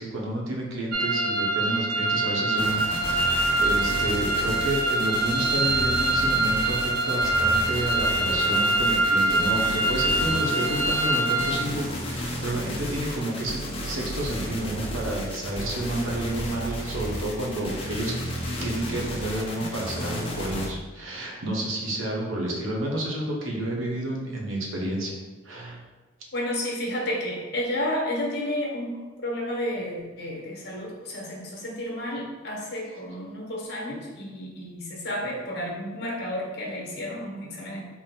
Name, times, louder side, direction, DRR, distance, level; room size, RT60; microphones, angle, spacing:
voice 1, 0.0-2.8 3.1-18.1 18.6-25.2 25.4-25.8, right 1 dB, 90° right, -2 dB, 0.8 m, -30 dB
sound 1, 0.9-11.5, right 2 dB, 50° right, 0.4 m, -24 dB
sound 2, 2.6-20.7, equal, 30° left, 0.5 m, -33 dB
voice 2, 26.3-37.8, left 1 dB, 55° left, -2 dB, 0.9 m, -31 dB
3.8 x 2.1 x 4.2 m, 1.3 s
head